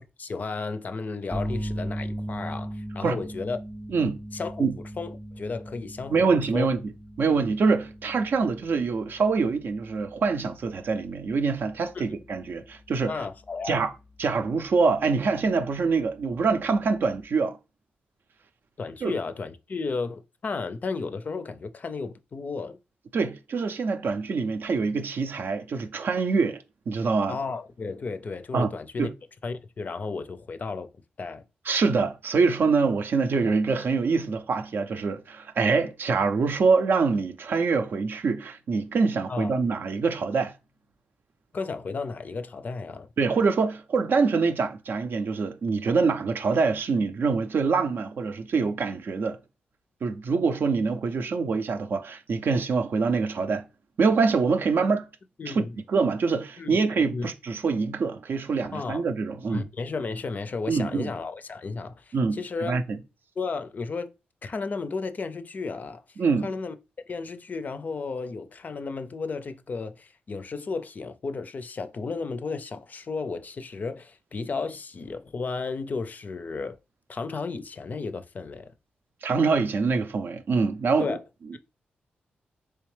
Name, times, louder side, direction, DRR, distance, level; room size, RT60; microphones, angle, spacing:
voice 1, 0.0-3.6 4.3-4.7 5.0-6.7 11.9-12.0 13.1-13.8 18.8-22.8 27.3-29.1 29.4-30.9 31.2-31.5 39.3-39.5 41.5-43.1 55.4-55.8 56.6-56.8 57.1-57.3 58.7-59.1 59.5-62.7 63.4-64.1 64.4-66.0 66.4-66.7 67.1-76.8 77.1-78.7 81.0-81.2, left 4 dB, 45° left, 0.4 m, -33 dB
sound 1, 1.3-17.2, equal, 10° right, 0.5 m, -39 dB
voice 2, 6.1-6.8 7.2-13.1 13.7-13.9 14.2-17.6 19.0-19.1 23.1-26.6 26.9-27.4 28.5-28.7 29.0-29.1 31.7-40.5 43.2-49.4 50.0-53.6 54.0-55.1 55.5-55.6 55.9-59.7 60.7-61.1 62.1-63.0 66.2-66.5 79.2-81.2, right 4 dB, 65° right, 0.4 m, -25 dB
3.4 x 3.1 x 3.2 m
cardioid pair, 65°, 4 cm